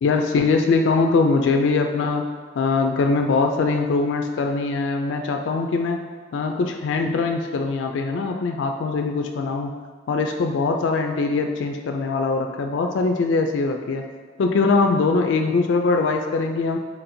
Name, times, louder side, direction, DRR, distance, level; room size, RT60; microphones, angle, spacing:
voice 1, 0.0-2.3 2.6-6.0 6.3-9.7 10.1-14.0 14.4-16.8, left 4 dB, 75° left, 4 dB, 0.3 m, -22 dB
4.2 x 2.6 x 4.3 m, 1.5 s
head